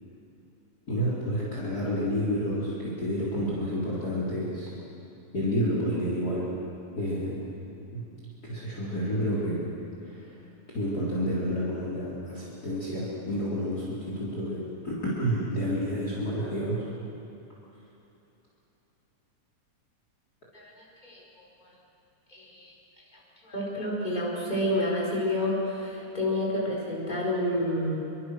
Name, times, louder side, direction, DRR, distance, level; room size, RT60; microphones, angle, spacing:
voice 1, 0.9-4.7 5.3-6.5 6.9-7.5 7.9-8.0 8.4-9.6 10.0-16.9, equal, 30° left, -6 dB, 4.3 m, -30 dB
voice 2, 20.5-21.7 22.3-22.7 23.4-28.0, left 1 dB, 15° left, -3 dB, 4.9 m, -29 dB
27.0 x 24.0 x 6.6 m, 2.9 s
omnidirectional pair, 3.4 m